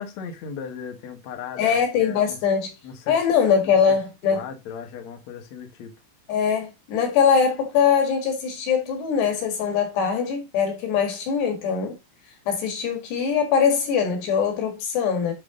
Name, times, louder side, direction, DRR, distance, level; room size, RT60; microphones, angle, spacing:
voice 1, 0.0-2.4 2.8-3.2 3.6-4.0 4.3-5.9, left 7 dB, 80° left, 1.6 m, -37 dB
voice 2, 1.6-2.7 3.1-4.4 6.3-12.0 12.5-15.3, left 7 dB, 65° left, 3.6 m, -22 dB
11.0 x 4.0 x 3.7 m
omnidirectional pair, 5.7 m